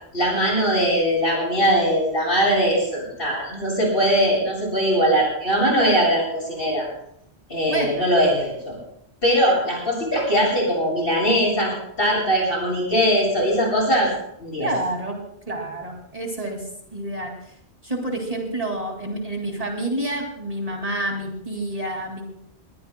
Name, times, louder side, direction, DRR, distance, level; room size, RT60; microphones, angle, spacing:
voice 1, 0.1-6.9 7.5-8.8 9.2-14.1 14.4-14.7, equal, 55° left, -3 dB, 8.2 m, -21 dB
voice 2, 7.7-8.0 14.6-15.2 15.5-16.6 16.9-17.3 17.8-22.2, right 1 dB, 35° right, 1 dB, 2.5 m, -28 dB
21.0 x 20.0 x 2.2 m, 0.73 s
omnidirectional pair, 1.1 m